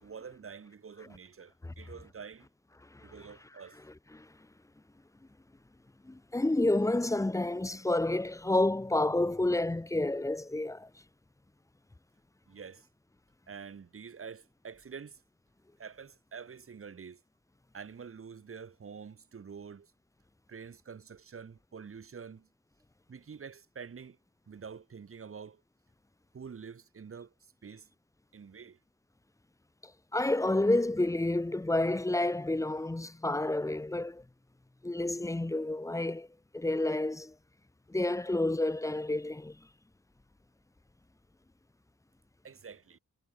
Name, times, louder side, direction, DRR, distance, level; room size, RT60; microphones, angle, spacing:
voice 1, 0.0-2.5 3.0-3.8 12.5-12.9 13.5-15.2 15.8-17.2 17.7-19.9 20.5-22.5 23.1-24.2 24.5-25.6 26.3-27.9 28.3-28.8 42.4-43.0, right 6 dB, 45° right, 1.2 m, -47 dB
voice 2, 6.0-10.9 30.1-34.2 34.8-36.3 36.5-37.3 37.9-39.6, left 2 dB, 10° left, 0.5 m, -29 dB
wide cardioid pair, 155°, 30 cm